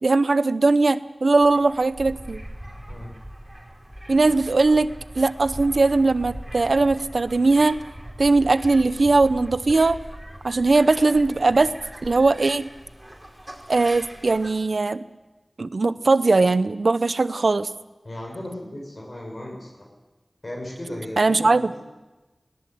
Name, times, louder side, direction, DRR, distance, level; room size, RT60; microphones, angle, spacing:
voice 1, 0.0-2.4 4.1-7.8 8.2-10.0 10.4-11.7 12.0-12.7 13.7-15.0 15.6-17.7 21.2-21.8, right 3 dB, 75° right, 14 dB, 0.7 m, -20 dB
sound 1, 1.4-14.5, equal, 15° right, 4.8 m, -40 dB
voice 2, 18.0-19.9 20.4-21.8, left 1 dB, 50° left, -1 dB, 6.1 m, -36 dB
20.0 x 18.0 x 7.8 m, 1.1 s
wide cardioid pair, 55°, 0 cm